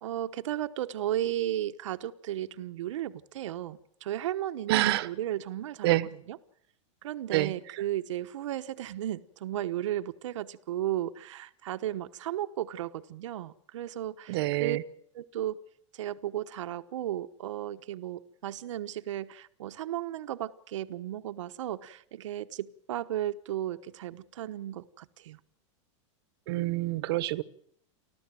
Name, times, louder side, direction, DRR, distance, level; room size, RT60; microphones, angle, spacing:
voice 1, 0.0-6.4 7.0-14.8 15.1-15.6 15.9-25.4, right 12 dB, 75° right, 1.1 m, -35 dB
voice 2, 4.7-5.1 5.8-6.1 7.3-7.5 14.3-14.8 26.5-27.4, right 17 dB, 50° right, 1.1 m, -26 dB
29.5 x 12.5 x 7.6 m
supercardioid pair, 165°, 16 cm